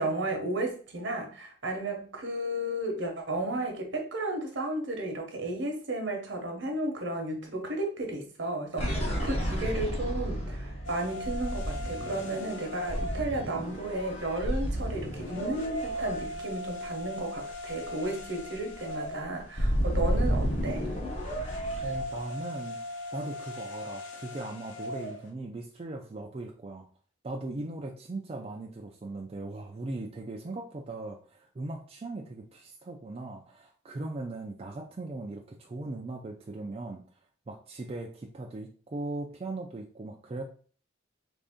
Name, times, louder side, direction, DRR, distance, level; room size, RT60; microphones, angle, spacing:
voice 1, 0.0-20.9, right 1 dB, 70° right, 0.9 m, -33 dB
sound 1, 8.8-17.2 17.6-17.7 18.0-22.2, equal, 30° left, 0.8 m, -32 dB
sound 2, 10.8-25.3, equal, 75° left, 0.9 m, -40 dB
voice 2, 21.8-26.9 27.2-37.0 37.5-40.4, right 2 dB, 30° right, 0.3 m, -39 dB
3.3 x 2.6 x 3.5 m
head